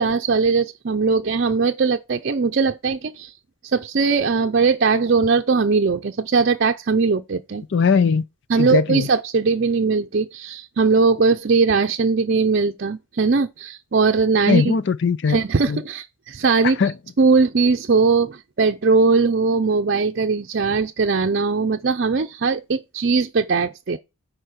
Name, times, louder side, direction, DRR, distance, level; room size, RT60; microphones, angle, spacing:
voice 1, 0.0-3.4 3.6-7.6 8.5-14.7 15.3-16.8 17.2-24.0, right 4 dB, 50° right, 0.5 m, -20 dB
voice 2, 7.7-8.2 8.6-9.1 14.5-15.4 15.7-15.8 16.8-16.9, left 5 dB, 55° left, 0.5 m, -19 dB
10.5 x 4.5 x 6.5 m
head